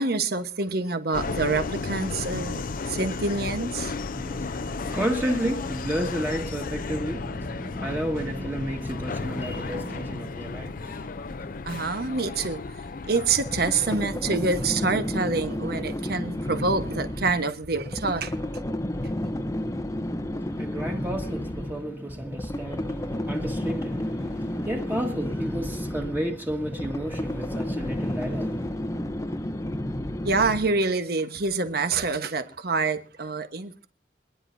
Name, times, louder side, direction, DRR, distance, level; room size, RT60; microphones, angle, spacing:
voice 1, 0.0-2.6 2.9-3.9 11.7-12.6 13.1-18.3 30.2-33.9, right 3 dB, 60° right, 1.2 m, -26 dB
Subway metro underground, 1.1-14.0, left 4 dB, 50° left, 0.5 m, -34 dB
voice 2, 4.0-11.7 20.3-28.8, equal, 10° right, 1.7 m, -32 dB
sound 1, 13.2-30.8, left 1 dB, 20° left, 0.8 m, -31 dB
26.5 x 10.5 x 2.7 m
head